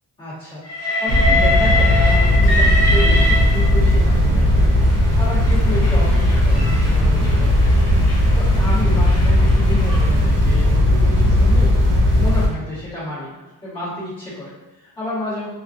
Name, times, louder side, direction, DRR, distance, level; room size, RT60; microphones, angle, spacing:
voice 1, 0.2-0.6 1.0-8.0 8.3-11.7 12.2-15.5, left 1 dB, 15° left, -14 dB, 1.3 m, -31 dB
Train, 0.6-4.0 4.9-10.1, left 1 dB, 40° left, 0.5 m, -24 dB
sound 1, 1.1-12.5, left 1 dB, 50° right, 0.8 m, -16 dB
2.8 x 2.3 x 2.4 m, 1.1 s
cardioid pair, 180°, 40 cm